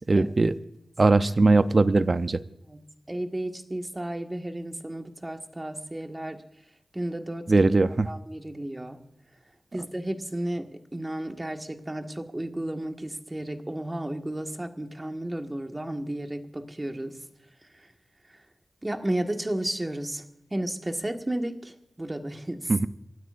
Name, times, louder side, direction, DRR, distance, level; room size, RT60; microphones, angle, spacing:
voice 1, 0.1-0.6 1.0-2.4 7.5-8.1 22.7-22.9, right 3 dB, 50° right, 12 dB, 0.7 m, -20 dB
voice 2, 2.7-6.4 6.9-7.7 8.1-9.0 9.7-17.2 18.8-20.2 20.5-22.7, right 1 dB, 20° right, 5 dB, 1.7 m, -33 dB
28.5 x 12.5 x 2.6 m, 0.83 s
wide cardioid pair, 65°, 0 cm